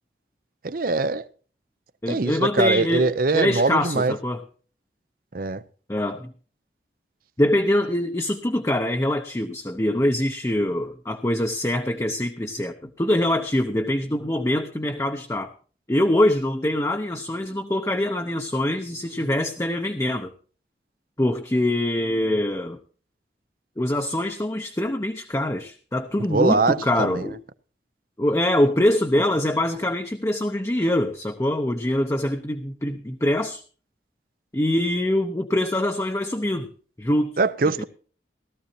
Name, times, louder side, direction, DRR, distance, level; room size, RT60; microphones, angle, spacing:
voice 1, 0.6-1.2 2.1-4.1 5.3-5.6 26.3-27.3 37.4-37.8, right 3 dB, 50° right, 0.6 m, -22 dB
voice 2, 2.0-3.1 3.3-4.4 5.9-6.3 7.4-15.5 15.9-20.3 21.2-22.8 23.8-27.4 28.2-33.6 34.5-36.7 37.0-37.4 37.8-37.9, left 1 dB, 15° left, 0.7 m, -24 dB
17.5 x 13.5 x 2.7 m
head